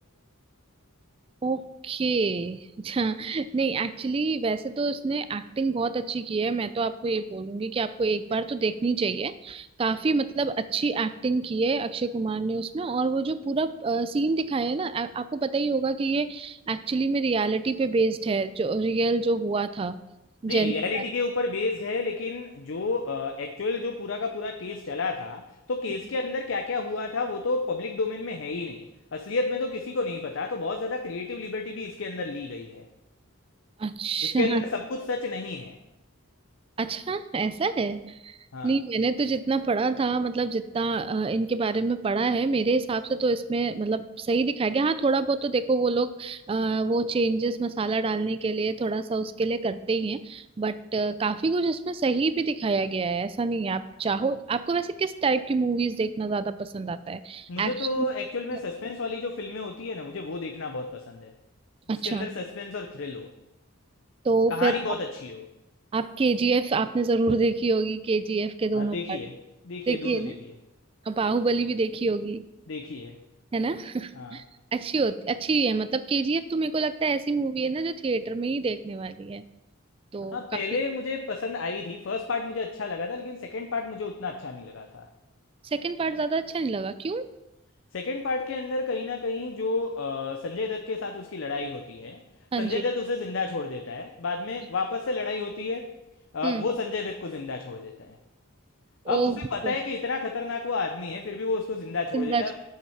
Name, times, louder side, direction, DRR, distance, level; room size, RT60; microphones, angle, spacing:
voice 1, 1.4-20.0 20.4-21.0 33.8-34.6 36.8-38.4 38.6-58.1 61.9-62.3 64.2-64.7 65.9-69.2 69.9-70.4 71.1-72.4 73.5-74.4 74.7-79.4 80.1-80.4 85.6-87.3 92.5-92.8 96.4-96.6 99.1-99.7 102.1-102.5, right 3 dB, 25° right, 14 dB, 0.3 m, -27 dB
voice 2, 20.5-32.9 34.2-35.8 38.5-38.7 57.5-61.3 62.0-63.3 64.5-65.5 68.7-69.3 69.6-70.3 72.7-73.2 74.1-74.4 80.3-85.1 87.9-92.2 92.6-95.9 96.3-98.2 99.1-102.5, left 3 dB, 70° left, 4 dB, 0.6 m, -31 dB
7.5 x 5.8 x 5.7 m, 0.95 s
head